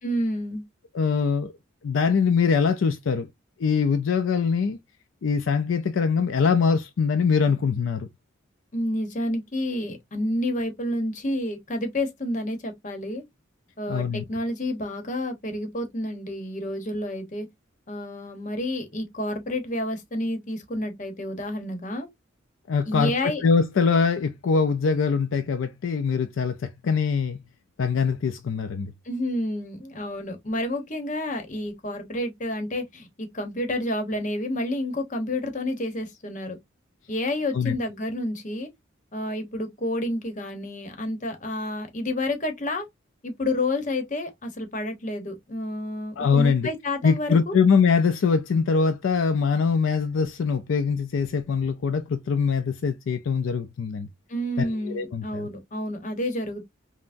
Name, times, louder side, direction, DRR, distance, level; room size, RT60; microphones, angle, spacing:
voice 1, 0.0-0.6 8.7-13.2 13.8-17.5 17.9-22.1 22.9-23.4 29.0-36.6 37.1-38.7 39.1-42.9 43.2-47.6 54.3-56.6, left 1 dB, 40° left, 0.8 m, -29 dB
voice 2, 0.9-1.5 1.8-3.3 3.6-4.8 5.2-8.1 13.9-14.2 22.7-23.1 23.4-27.4 27.8-28.9 37.5-37.8 46.2-46.7 47.0-54.1 54.6-55.5, left 5 dB, 75° left, 0.4 m, -23 dB
5.5 x 2.0 x 2.5 m
head